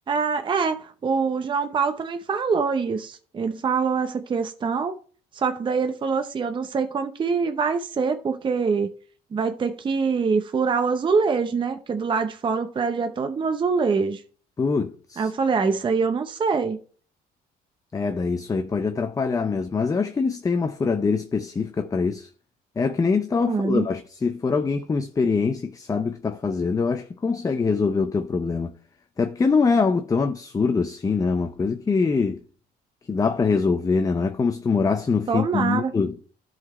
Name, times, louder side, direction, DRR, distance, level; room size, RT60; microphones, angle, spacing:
voice 1, 0.1-4.9 5.3-8.9 9.3-14.2 15.2-16.8 23.5-23.9 35.3-35.9, right 5 dB, 30° right, 0.7 m, -24 dB
voice 2, 14.6-15.3 17.9-22.3 22.8-28.7 29.2-32.4 33.1-36.2, left 4 dB, 20° left, 0.5 m, -23 dB
12.0 x 4.0 x 4.3 m
cardioid pair, 110°, 17 cm